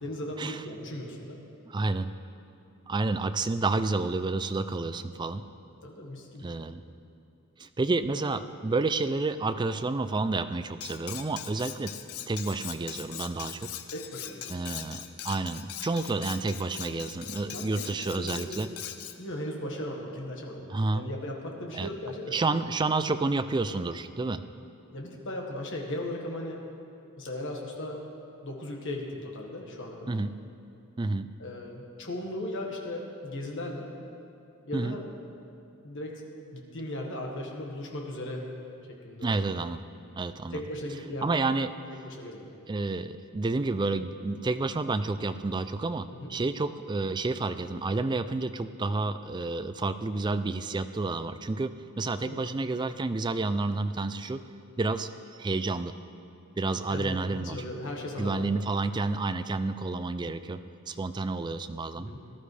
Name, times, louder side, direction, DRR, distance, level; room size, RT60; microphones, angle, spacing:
voice 1, 0.0-1.4 5.8-6.6 13.9-14.8 17.5-18.6 19.2-22.4 24.9-26.6 27.2-28.0 28.4-30.1 31.4-33.9 34.7-35.1 35.8-36.2 36.5-38.5 38.9-39.4 40.5-41.3 42.0-42.5 46.1-46.3 52.2-52.4 56.9-58.5 62.0-62.2, left 1 dB, 60° left, 0 dB, 1.6 m, -37 dB
voice 2, 1.7-2.1 2.9-5.4 6.4-6.8 7.6-11.9 12.3-13.7 14.5-18.7 20.7-21.1 21.7-21.9 22.3-24.4 30.1-30.3 31.0-31.3 34.7-35.0 39.2-39.9 40.2-40.6 41.2-41.7 42.7-51.7 52.0-54.4 54.8-55.1 55.4-55.9 56.6-57.6 58.2-60.6 60.9-62.1, right 3 dB, 20° right, 11 dB, 0.3 m, -30 dB
Cutlery silverware, 10.8-19.2, left 10 dB, 75° left, 0.6 m, -41 dB
18.5 x 12.0 x 3.3 m, 2.8 s
head